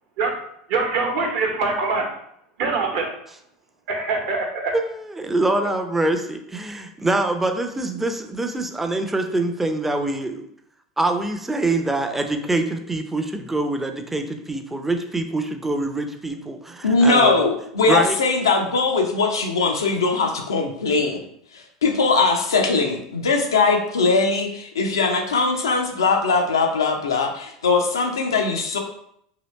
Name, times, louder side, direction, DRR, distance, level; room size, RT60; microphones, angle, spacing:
voice 1, 0.7-2.1 2.6-3.1 3.9-4.7, right 3 dB, 60° right, 1 dB, 0.9 m, -23 dB
voice 2, 4.7-10.4 11.0-17.4 17.9-18.2, right 2 dB, 10° right, 6 dB, 0.4 m, -24 dB
voice 3, 16.8-21.2 21.5-28.8, left 4 dB, 85° left, 3 dB, 0.5 m, -20 dB
2.9 x 2.7 x 3.1 m, 0.72 s
hypercardioid pair, 80°, 2 cm